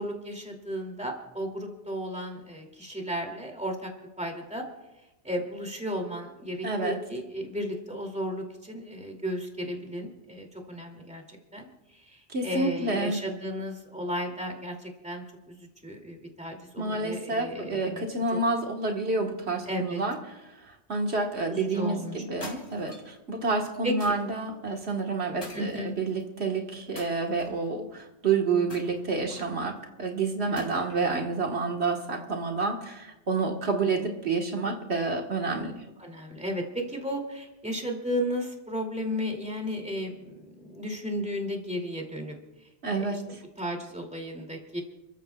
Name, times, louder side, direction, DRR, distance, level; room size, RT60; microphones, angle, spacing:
voice 1, 0.0-3.9 4.2-4.6 5.2-11.7 11.9-18.0 18.3-18.4 19.7-20.0 21.5-22.2 23.8-24.1 25.5-26.0 30.7-30.9 36.0-42.4 42.9-43.2 43.6-44.8, equal, 5° right, 1 dB, 2.5 m, -34 dB
voice 2, 6.6-7.0 12.3-13.2 16.8-20.2 20.6-35.7 42.8-43.4, right 3 dB, 80° right, 2 dB, 1.7 m, -29 dB
sound 1, 22.4-23.2 24.0-24.4 25.4-26.2 27.0-27.7 28.7-29.6 30.6-31.1, left 1 dB, 65° left, 3.8 m, -45 dB
30.0 x 14.5 x 2.3 m, 1.0 s
omnidirectional pair, 1.1 m